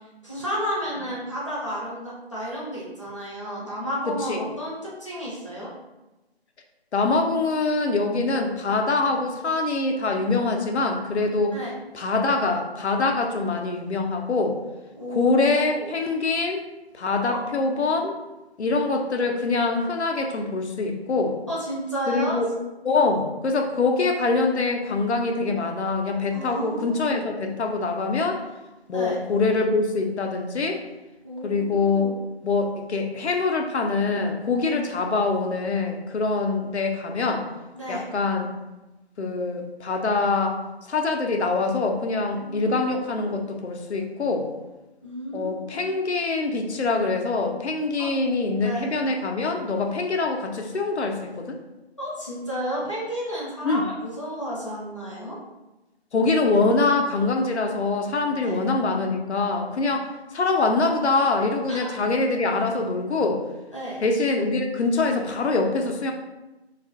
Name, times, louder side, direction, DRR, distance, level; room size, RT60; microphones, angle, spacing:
voice 1, 0.2-5.7 11.5-11.7 15.0-15.9 17.3-17.5 21.5-22.4 26.3-27.2 28.9-29.2 31.2-32.2 37.7-38.0 42.4-42.9 43.1-43.2 45.0-45.9 48.0-48.1 48.6-49.0 52.0-55.4 58.4-58.6 61.7-61.9 63.7-64.0, equal, 30° left, -7 dB, 0.5 m, -32 dB
voice 2, 6.9-11.6 11.9-14.6 15.1-16.6 17.0-18.2 18.6-21.4 22.1-22.5 22.8-28.4 28.9-30.8 31.4-32.1 32.4-37.5 37.9-38.5 39.2-40.6 40.9-44.5 45.3-51.6 53.6-53.8 56.1-60.1 60.3-63.4 64.0-66.1, left 3 dB, 85° left, 3 dB, 0.6 m, -24 dB
2.6 x 2.4 x 2.4 m, 1.0 s
figure-of-eight pair, 170°, 33 cm